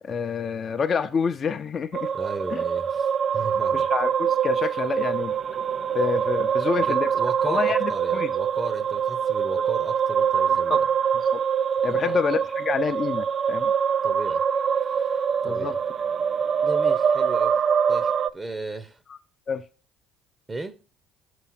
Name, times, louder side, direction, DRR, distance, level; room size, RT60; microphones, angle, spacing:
voice 1, 0.0-2.1 2.5-2.6 3.7-5.3 5.9-7.1 7.5-8.3 10.5-10.8 11.1-11.4 11.8-13.7 15.4-15.7 19.1-19.2 19.5-19.6, left 6 dB, 45° left, 0.6 m, -28 dB
sound 1, 1.9-18.3, right 7 dB, 45° right, 0.3 m, -24 dB
voice 2, 2.1-3.9 6.8-10.9 11.9-12.2 14.0-14.4 14.8-15.7 16.6-17.6 17.9-19.0 20.5-20.8, right 3 dB, 25° right, 0.8 m, -35 dB
5.5 x 4.8 x 5.8 m
hypercardioid pair, 60°, 0 cm